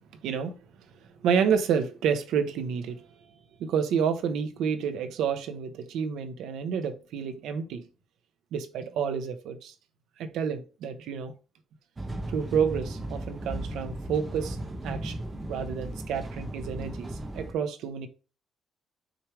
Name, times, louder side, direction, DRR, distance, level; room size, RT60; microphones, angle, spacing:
voice 1, 0.2-0.7 1.2-3.0 3.6-7.9 8.5-9.7 10.2-11.3 12.3-14.6 14.8-15.2 15.5-18.1, right 7 dB, 70° right, 0.9 m, -29 dB
sound 1, 12.0-17.5, right 1 dB, 20° right, 0.9 m, -36 dB
6.2 x 3.3 x 4.8 m
cardioid pair, 175°, 0 cm